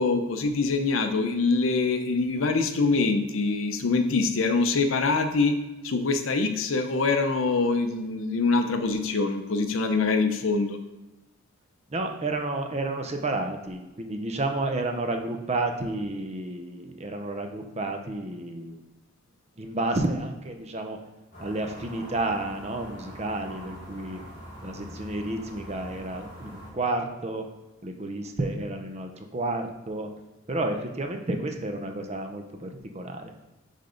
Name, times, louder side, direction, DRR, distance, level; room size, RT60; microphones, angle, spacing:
voice 1, 0.0-5.6 5.8-10.8, left 3 dB, 70° left, 7 dB, 0.6 m, -24 dB
voice 2, 11.9-18.8 19.6-21.0 21.4-24.2 24.6-27.4 27.8-30.1 30.5-33.3, right 2 dB, 30° right, 4 dB, 0.6 m, -31 dB
sound 1, 21.3-26.7, equal, 40° left, 2.1 m, -43 dB
5.8 x 3.6 x 5.0 m, 1.1 s
head